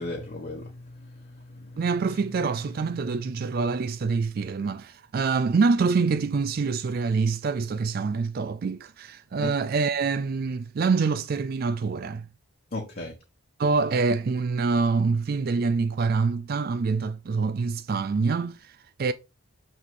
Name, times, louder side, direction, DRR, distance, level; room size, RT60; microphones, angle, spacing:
voice 1, 0.0-1.8 9.4-9.5 12.7-13.1, left 2 dB, 45° left, 1.3 m, -36 dB
voice 2, 1.8-12.3 13.6-19.1, right 4 dB, 45° right, 0.3 m, -26 dB
6.5 x 5.9 x 3.7 m
head